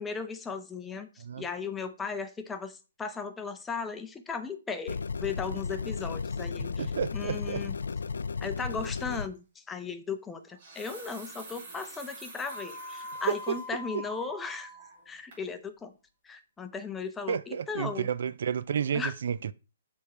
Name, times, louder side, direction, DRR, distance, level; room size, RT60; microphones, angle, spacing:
voice 1, 0.0-7.8 8.4-14.8 15.1-15.9 16.2-18.1 18.9-19.1, left 5 dB, 10° left, 0.6 m, -37 dB
sound 1, 4.9-9.3, left 5 dB, 85° left, 0.4 m, -34 dB
voice 2, 6.8-7.6 13.3-13.6 17.3-19.5, right 7 dB, 65° right, 0.3 m, -31 dB
sound 2, 9.2-9.4 10.4-13.7 14.1-14.2 14.8-15.1 15.3-15.5, right 3 dB, 40° right, 3.6 m, -48 dB
sound 3, 12.4-15.0, left 1 dB, 30° left, 1.3 m, -42 dB
6.5 x 3.5 x 4.2 m
hypercardioid pair, 150°, 0 cm